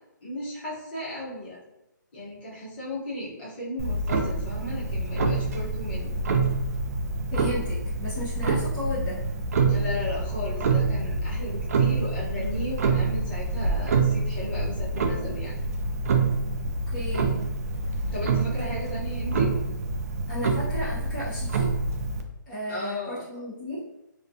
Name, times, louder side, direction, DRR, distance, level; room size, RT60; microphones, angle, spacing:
voice 1, 0.2-1.6 2.1-6.2 9.7-15.5 18.0-19.5 22.7-23.4, left 1 dB, 30° left, -7 dB, 0.9 m, -35 dB
Clock, 3.8-22.2, right 3 dB, 50° right, 0.4 m, -26 dB
voice 2, 7.3-9.2 16.9-17.4 18.6-18.7 20.3-21.7 22.5-23.8, equal, 5° left, -15 dB, 0.5 m, -34 dB
2.3 x 2.3 x 2.7 m, 0.88 s
hypercardioid pair, 165°, 11 cm